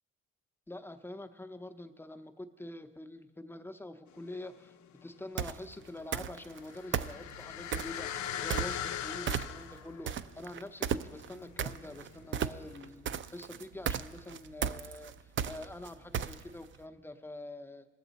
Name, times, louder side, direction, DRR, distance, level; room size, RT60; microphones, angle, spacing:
voice 1, 0.7-4.7 5.0-17.8, left 1 dB, 5° left, 7 dB, 0.6 m, -46 dB
sound 1, 4.1-4.9 5.2-12.3 12.8-12.9, left 10 dB, 70° left, 0.5 m, -41 dB
sound 2, 5.4-5.6 6.1-6.6 6.9-8.0 8.5-9.0 9.3-9.8 10.1-16.6, right 8 dB, 40° right, 0.4 m, -34 dB
19.5 x 7.2 x 4.0 m, 1.5 s
cardioid pair, 90°, 30 cm